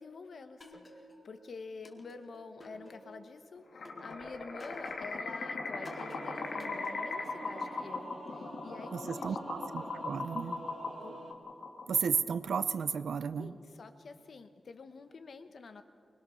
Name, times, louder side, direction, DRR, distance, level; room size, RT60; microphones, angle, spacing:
voice 1, 0.0-9.4 11.0-11.2 13.3-15.8, left 4 dB, 55° left, 9 dB, 1.2 m, -48 dB
sound 1, 0.6-1.4 1.9-3.3 3.9-5.3 5.9-7.3, left 1 dB, 30° left, 2.1 m, -53 dB
sound 2, 3.7-12.2, left 3 dB, 70° left, 2.3 m, -39 dB
Singing / Musical instrument, 5.7-11.3, right 3 dB, 50° right, 2.4 m, -48 dB
voice 2, 8.9-10.6 11.9-13.5, right 6 dB, 85° right, 13 dB, 0.7 m, -33 dB
25.0 x 20.5 x 6.4 m, 2.5 s
wide cardioid pair, 165°, 0 cm